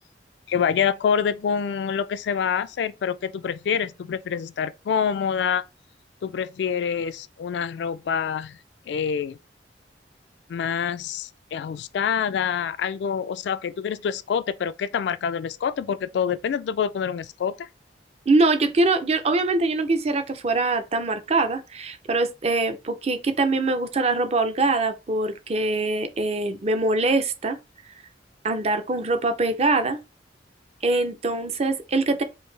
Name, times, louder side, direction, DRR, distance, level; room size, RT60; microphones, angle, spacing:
voice 1, 0.5-5.6 6.2-8.6 8.9-9.4 10.5-17.7, left 7 dB, 70° left, 0.3 m, -26 dB
voice 2, 18.3-27.6 28.4-30.0 30.8-32.2, right 2 dB, 35° right, 0.5 m, -23 dB
4.6 x 2.6 x 3.2 m
head